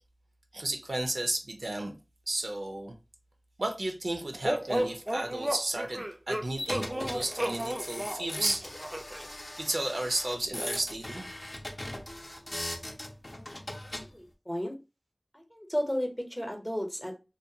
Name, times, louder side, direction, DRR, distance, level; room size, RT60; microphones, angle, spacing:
voice 1, 0.5-2.0 2.3-2.9 3.6-8.7 9.6-11.3, right 1 dB, 85° right, 0.5 m, -33 dB
sound 1, 4.4-9.3, right 1 dB, 25° right, 0.4 m, -33 dB
sound 2, 6.6-14.1, left 1 dB, 55° left, 0.5 m, -39 dB
voice 2, 14.0-14.7 15.3-17.2, equal, 15° left, 0.7 m, -34 dB
2.5 x 2.2 x 2.6 m
wide cardioid pair, 45°, 0 cm